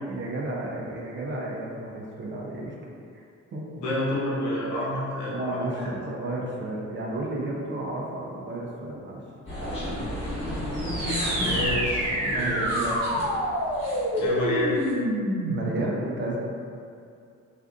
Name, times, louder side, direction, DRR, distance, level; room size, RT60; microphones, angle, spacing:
voice 1, 0.1-2.7 3.1-3.2 3.5-3.7 5.3-9.2 12.3-13.0 15.5-16.4, right 2 dB, 40° right, -3 dB, 0.5 m, -32 dB
voice 2, 3.8-5.7 10.7-10.8 11.3-12.8 14.2-14.8, left 1 dB, 70° left, -7 dB, 0.8 m, -29 dB
sound 1, 9.5-14.9, left 1 dB, 20° left, 1.2 m, -33 dB
sound 2, 10.7-15.8, right 1 dB, 85° right, 0.8 m, -27 dB
2.5 x 2.4 x 2.3 m, 2.4 s
cardioid pair, 90°, 30 cm